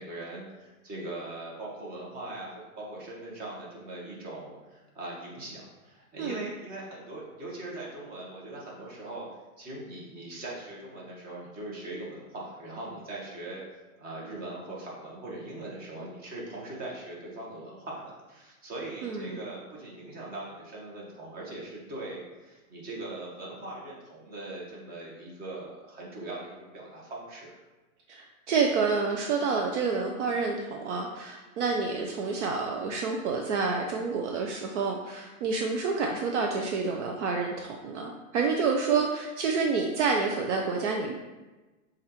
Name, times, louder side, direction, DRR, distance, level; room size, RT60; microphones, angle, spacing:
voice 1, 0.0-9.3 9.6-27.5, right 2 dB, 20° right, -4 dB, 1.1 m, -41 dB
voice 2, 19.0-19.4 28.1-41.1, right 4 dB, 55° right, 2 dB, 0.5 m, -28 dB
7.2 x 2.6 x 2.9 m, 1.2 s
hypercardioid pair, 140°, 43 cm